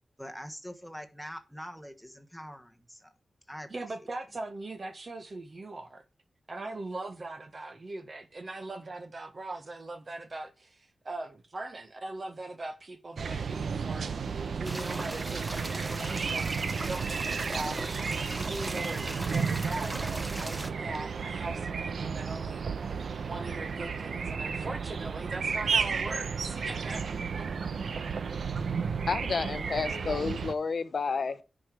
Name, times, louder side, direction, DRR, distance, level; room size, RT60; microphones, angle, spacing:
voice 1, 0.2-3.1 3.5-3.7 4.0-4.1, equal, ahead, 1.4 m, -44 dB
voice 2, 3.7-6.0 6.5-22.9 23.3-27.4, right 2 dB, 40° right, 1.5 m, -40 dB
sound 1, 13.2-30.5, right 5 dB, 75° right, 0.9 m, -33 dB
sound 2, 14.6-20.7, right 1 dB, 20° right, 0.8 m, -39 dB
voice 3, 29.1-31.4, left 4 dB, 55° left, 0.9 m, -30 dB
10.0 x 5.2 x 6.1 m
wide cardioid pair, 135°, 0 cm